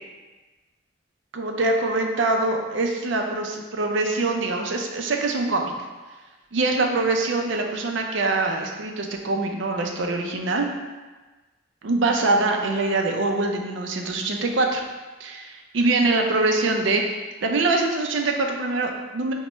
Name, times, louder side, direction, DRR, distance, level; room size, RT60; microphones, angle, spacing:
voice 1, 1.3-5.7 6.5-10.7 11.8-14.8 15.2-19.3, right 2 dB, 70° right, 2 dB, 0.5 m, -24 dB
5.3 x 2.2 x 3.0 m, 1.2 s
head